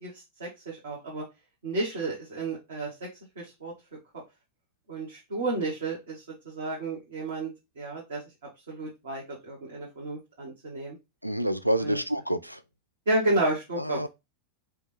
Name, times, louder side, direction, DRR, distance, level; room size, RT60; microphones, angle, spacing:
voice 1, 0.0-1.2 1.6-2.9 3.4-3.7 4.9-7.5 7.8-8.2 8.7-11.0 11.8-12.0 13.1-14.1, right 2 dB, 65° right, 1.4 m, -31 dB
voice 2, 11.2-12.6 13.8-14.1, right 1 dB, 90° right, 0.3 m, -28 dB
5.0 x 2.4 x 3.3 m
figure-of-eight pair, 90°, 0 cm